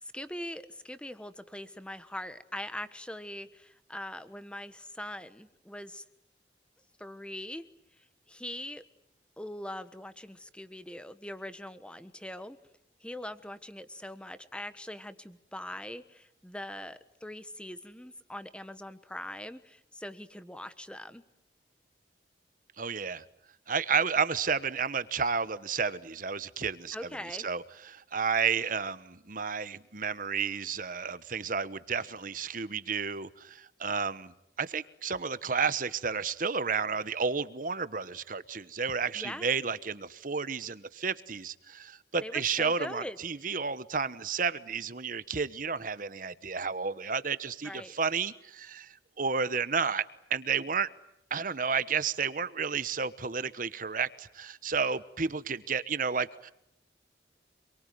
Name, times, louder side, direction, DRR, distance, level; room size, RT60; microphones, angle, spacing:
voice 1, 0.0-6.0 7.0-7.6 8.0-8.8 9.4-12.6 13.0-21.2 26.9-27.5 39.1-39.5 42.2-43.2 47.6-47.9, left 1 dB, 5° left, 12 dB, 1.2 m, -42 dB
voice 2, 22.8-23.2 23.7-27.0 27.4-50.0 50.3-50.9 51.3-56.5, right 5 dB, 50° right, 15 dB, 1.1 m, -31 dB
27.5 x 23.0 x 9.4 m, 0.81 s
head